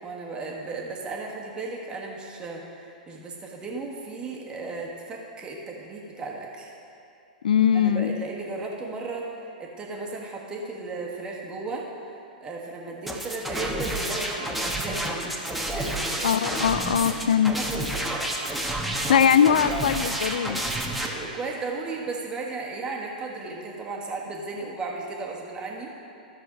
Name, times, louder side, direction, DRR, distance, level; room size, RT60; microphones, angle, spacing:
voice 1, 0.0-6.7 7.7-11.9 12.4-16.3 17.4-18.4 19.2-19.3 21.0-25.9, right 3 dB, 20° right, -1 dB, 1.4 m, -35 dB
voice 2, 7.4-8.1 16.2-17.5 19.1-20.6, left 8 dB, 65° left, 14 dB, 0.4 m, -21 dB
sound 1, 13.1-21.1, right 1 dB, ahead, 0.9 m, -30 dB
13.5 x 6.5 x 4.1 m, 2.6 s
figure-of-eight pair, 105°, 5 cm